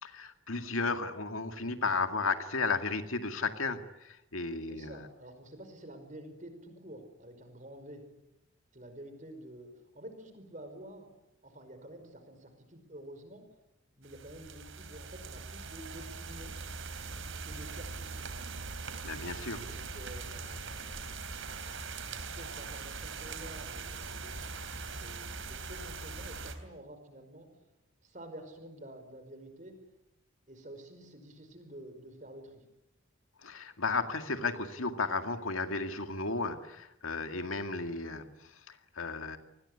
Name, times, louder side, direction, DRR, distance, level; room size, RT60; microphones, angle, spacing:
voice 1, 0.0-5.0 19.0-19.6 33.4-39.4, left 4 dB, 80° left, 8 dB, 2.2 m, -34 dB
voice 2, 4.7-8.0 8.7-11.1 11.4-13.4 14.0-16.6 17.4-18.3 19.5-21.3 21.7-27.5 28.0-29.7 30.5-32.7, right 1 dB, 35° right, 8 dB, 5.2 m, -49 dB
sound 1, 14.0-26.6, right 4 dB, 65° right, 3.2 m, -41 dB
27.5 x 20.0 x 9.8 m, 0.89 s
head